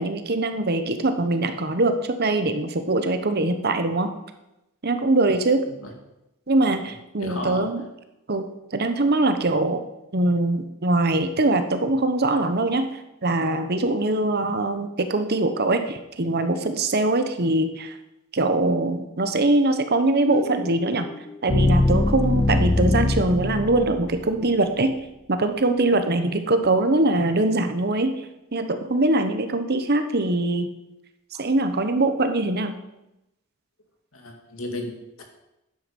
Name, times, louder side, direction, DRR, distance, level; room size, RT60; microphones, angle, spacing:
voice 1, 0.0-4.1 4.8-5.6 6.5-7.8 8.3-8.4 8.7-9.8 10.1-12.8 13.2-17.9 18.3-21.1 21.4-24.9 25.3-28.1 28.5-30.7 31.4-32.7, right 2 dB, 50° right, 8 dB, 1.1 m, -22 dB
voice 2, 7.2-7.7 31.3-31.5 34.1-35.2, left 2 dB, 70° left, 3 dB, 2.4 m, -34 dB
sound 1, 20.3-24.4, left 2 dB, 15° left, 0.3 m, -23 dB
12.5 x 9.4 x 5.4 m, 0.92 s
head